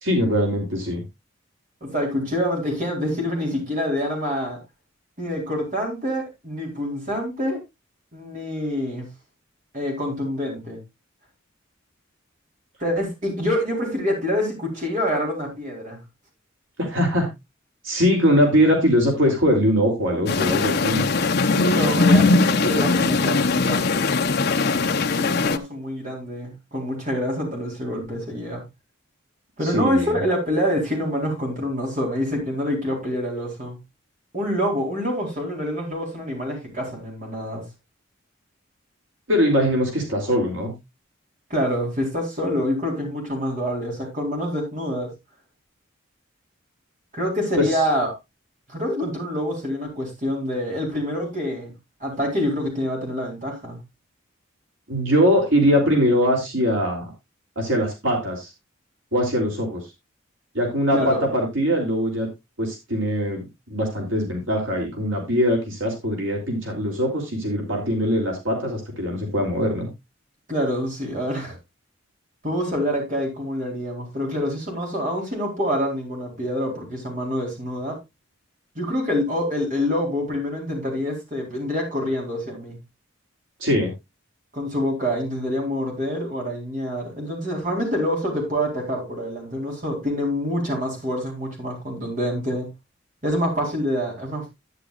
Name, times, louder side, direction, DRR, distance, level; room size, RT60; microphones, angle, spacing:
voice 1, 0.0-1.0 16.8-17.3 17.8-21.0 29.6-30.2 39.3-40.7 47.6-47.7 54.9-57.1 57.5-58.5 59.1-59.8 60.5-62.3 62.6-69.9 83.6-83.9, equal, 70° right, 1 dB, 3.4 m, -21 dB
voice 2, 1.8-4.6 5.2-7.6 8.1-9.1 9.7-10.8 12.8-16.0 21.4-24.0 25.1-28.6 29.6-33.8 34.3-37.6 41.5-45.1 47.1-48.1 48.7-51.7 52.0-53.8 60.9-61.2 70.5-71.6 72.4-78.0 78.7-82.8 84.5-92.7 93.2-94.5, equal, 40° right, 0 dB, 4.3 m, -26 dB
sound 1, 20.3-25.6, left 3 dB, 55° left, 0.9 m, -20 dB
11.5 x 10.0 x 2.5 m, 0.22 s
head